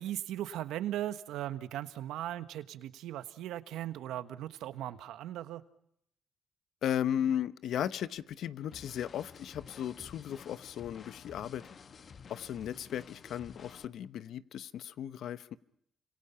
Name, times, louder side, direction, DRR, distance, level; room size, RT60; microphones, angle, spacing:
voice 1, 0.0-5.6, right 12 dB, 85° right, 1.4 m, -38 dB
voice 2, 6.8-11.6 12.3-15.6, left 10 dB, 75° left, 1.0 m, -36 dB
sound 1, 8.7-13.8, left 6 dB, 45° left, 1.2 m, -52 dB
29.5 x 26.5 x 5.8 m
cardioid pair, 90°, 0 cm